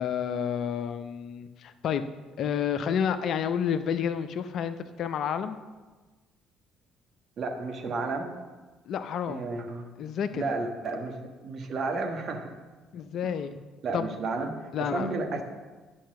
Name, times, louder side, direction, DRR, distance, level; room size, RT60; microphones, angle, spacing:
voice 1, 0.0-2.0 2.4-5.6 8.9-9.6 10.0-10.4 12.9-13.6 13.9-14.1 14.7-15.4, left 8 dB, 55° left, 11 dB, 0.5 m, -30 dB
voice 2, 7.4-8.3 9.3-9.9 10.3-12.5 13.8-14.5 14.8-15.4, right 3 dB, 50° right, 4 dB, 1.3 m, -32 dB
10.0 x 5.6 x 6.5 m, 1.3 s
figure-of-eight pair, 50°, 0 cm